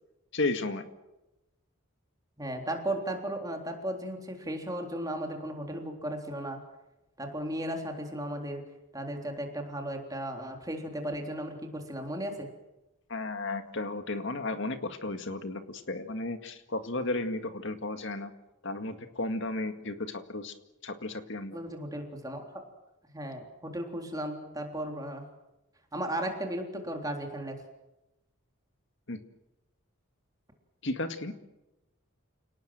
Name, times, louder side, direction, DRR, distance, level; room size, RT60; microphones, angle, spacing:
voice 1, 0.3-0.9 13.1-18.3 18.6-20.5 20.8-21.6 29.1-29.2 30.8-31.3, left 2 dB, 60° left, 8 dB, 2.0 m, -34 dB
voice 2, 2.4-6.6 7.2-8.6 8.9-12.5 21.5-22.5 23.1-25.2 25.9-27.6, right 1 dB, 15° right, 3 dB, 3.6 m, -35 dB
29.0 x 18.5 x 7.7 m, 0.97 s
head